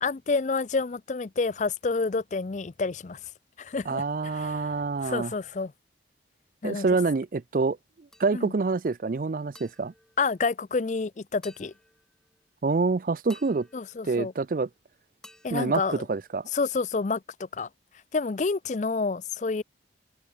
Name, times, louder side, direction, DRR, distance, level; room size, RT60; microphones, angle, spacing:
voice 1, 0.0-3.2 3.6-4.7 5.0-5.7 6.6-6.9 8.3-8.5 10.2-11.7 13.7-14.3 15.4-16.0 16.5-17.7 18.1-19.6, left 4 dB, 40° left, 0.4 m, -29 dB
voice 2, 3.9-5.3 6.6-7.8 8.2-9.9 12.6-13.7 14.0-14.7 15.5-16.5, right 4 dB, 45° right, 0.4 m, -26 dB
sound 1, 8.1-8.7 9.5-11.0 11.4-12.4 13.3-14.8 15.2-16.6, left 1 dB, 5° left, 7.8 m, -56 dB
head